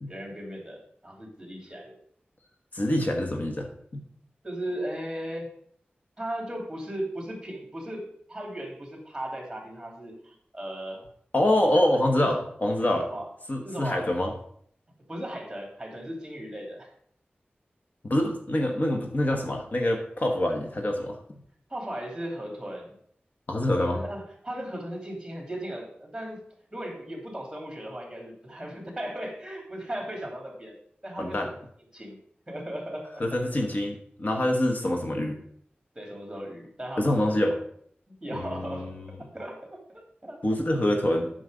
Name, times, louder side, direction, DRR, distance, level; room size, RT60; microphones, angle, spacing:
voice 1, 0.1-1.9 4.4-5.5 6.2-11.0 11.7-12.3 12.9-13.3 13.6-14.1 15.1-16.9 21.7-22.9 23.8-26.4 26.7-30.7 31.0-31.5 31.9-32.2 32.5-33.2 35.9-37.3 38.2-40.4, right 1 dB, 15° right, 0 dB, 2.8 m, -37 dB
voice 2, 2.7-3.7 3.9-4.0 11.3-13.1 13.5-14.3 18.0-21.2 23.5-24.0 31.2-31.5 33.2-35.4 37.0-37.6 38.3-39.1 40.4-41.3, left 1 dB, 50° left, 2 dB, 1.1 m, -25 dB
8.1 x 6.3 x 5.0 m, 0.64 s
wide cardioid pair, 85°, 4 cm